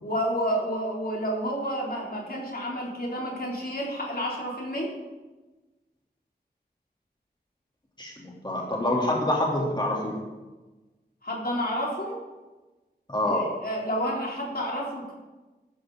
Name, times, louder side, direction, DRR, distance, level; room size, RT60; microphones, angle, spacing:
voice 1, 0.0-4.9 11.2-12.2 13.3-15.1, equal, 60° left, -2 dB, 3.1 m, -30 dB
voice 2, 8.0-10.2 13.1-13.5, left 1 dB, 25° left, -3 dB, 3.1 m, -26 dB
13.0 x 11.0 x 3.9 m, 1.2 s
wide cardioid pair, 55°, 17 cm